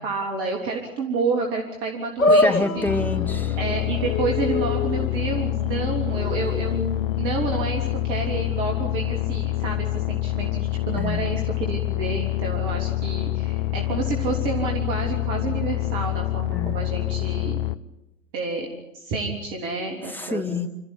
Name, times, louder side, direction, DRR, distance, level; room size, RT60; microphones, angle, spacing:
voice 1, 0.0-2.8 3.6-17.6 18.3-20.4, right 4 dB, 40° right, 1 dB, 3.5 m, -29 dB
sound 1, 2.2-8.6, left 2 dB, 85° left, 0.9 m, -27 dB
voice 2, 2.4-3.6 10.9-11.3 16.5-16.8 20.1-20.7, left 2 dB, 5° left, 8 dB, 1.1 m, -27 dB
sound 2, 2.8-17.8, left 14 dB, 40° left, 0.9 m, -26 dB
27.5 x 14.0 x 10.0 m, 0.89 s
figure-of-eight pair, 100°, 40 cm